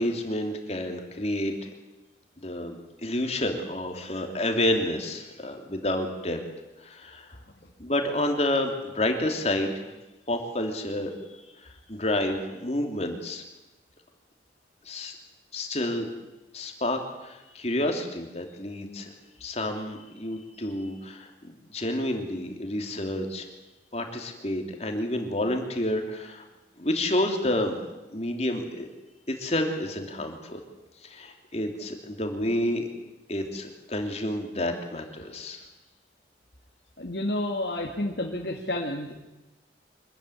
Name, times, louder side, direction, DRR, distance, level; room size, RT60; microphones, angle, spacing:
voice 1, 0.0-1.7 2.4-6.4 6.8-7.3 7.8-9.9 10.3-13.4 14.8-15.1 15.5-16.1 16.5-19.1 19.4-23.5 23.9-26.4 26.8-27.8 28.1-28.9 29.3-30.6 31.0-32.9 33.3-35.6, left 1 dB, 35° left, 4 dB, 3.0 m, -29 dB
voice 2, 37.0-39.2, left 1 dB, 65° left, -1 dB, 2.4 m, -30 dB
25.0 x 14.5 x 9.9 m, 1.0 s
head